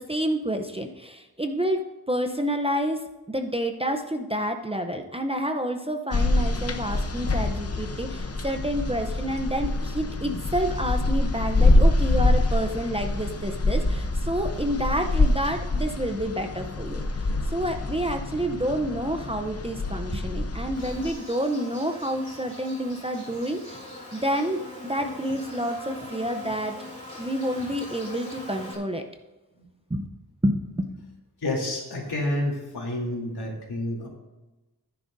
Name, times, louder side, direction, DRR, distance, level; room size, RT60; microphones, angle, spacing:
voice 1, 0.0-26.7 27.2-29.0 29.9-30.1 30.4-31.1, equal, 15° right, 5 dB, 0.7 m, -29 dB
sound 1, 6.1-21.1, left 2 dB, 40° left, 0.8 m, -25 dB
Insect, 20.8-28.8, left 1 dB, 20° left, 2.9 m, -41 dB
voice 2, 31.4-34.1, left 1 dB, 75° left, -2 dB, 3.1 m, -29 dB
15.5 x 10.0 x 2.6 m, 1.1 s
wide cardioid pair, 115°, 39 cm